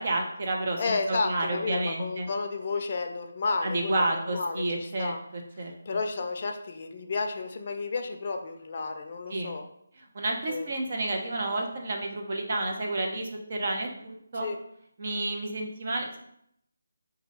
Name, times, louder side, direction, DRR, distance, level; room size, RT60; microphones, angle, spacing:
voice 1, 0.0-2.3 3.6-5.7 9.3-9.5 10.1-14.5 15.0-16.2, right 2 dB, 45° right, 1 dB, 0.9 m, -30 dB
voice 2, 0.8-5.2 5.9-9.7 10.5-10.7 14.3-14.6, left 4 dB, 40° left, 5 dB, 0.5 m, -32 dB
4.6 x 2.8 x 3.9 m, 0.72 s
figure-of-eight pair, 155°, 0 cm